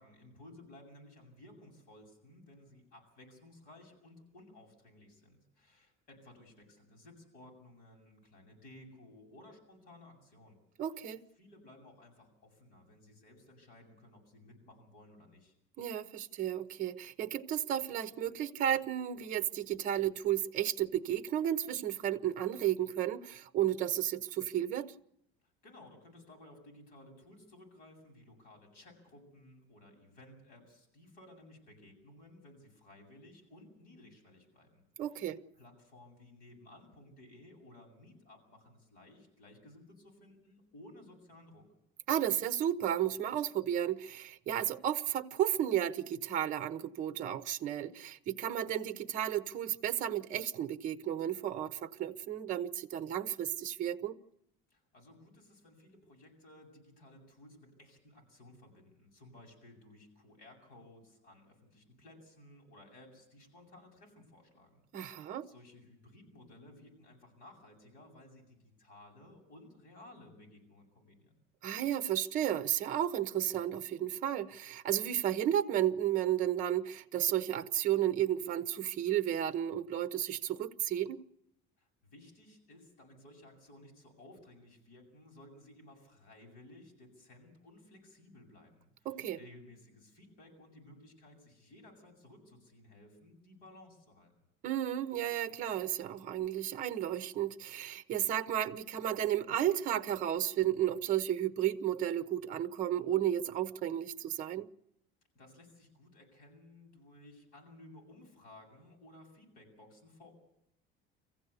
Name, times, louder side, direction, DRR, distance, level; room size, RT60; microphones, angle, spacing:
voice 1, 0.0-10.6 11.4-15.5 25.4-35.3 35.6-41.7 54.7-71.3 81.8-94.3 105.3-110.3, left 1 dB, 45° left, 7.8 m, -57 dB
voice 2, 10.8-11.2 15.8-24.9 35.0-35.4 42.1-54.2 64.9-65.5 71.6-81.2 89.0-89.4 94.6-104.7, right 11 dB, 40° right, 1.0 m, -33 dB
24.5 x 15.5 x 8.3 m
cardioid pair, 175°, 21 cm